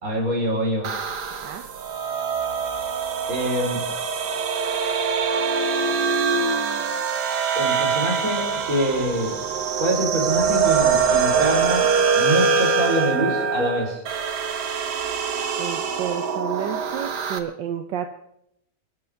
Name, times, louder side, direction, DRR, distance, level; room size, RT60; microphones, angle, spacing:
voice 1, 0.0-0.9 3.3-3.8 7.5-9.4 9.8-11.9 12.1-14.0, right 1 dB, 50° right, -1 dB, 4.9 m, -25 dB
sound 1, 0.8-17.4, right 6 dB, 70° right, 1.8 m, -24 dB
voice 2, 1.3-1.6 15.6-18.1, right 9 dB, 85° right, 7 dB, 1.5 m, -31 dB
28.5 x 12.5 x 3.6 m, 0.78 s
omnidirectional pair, 1.9 m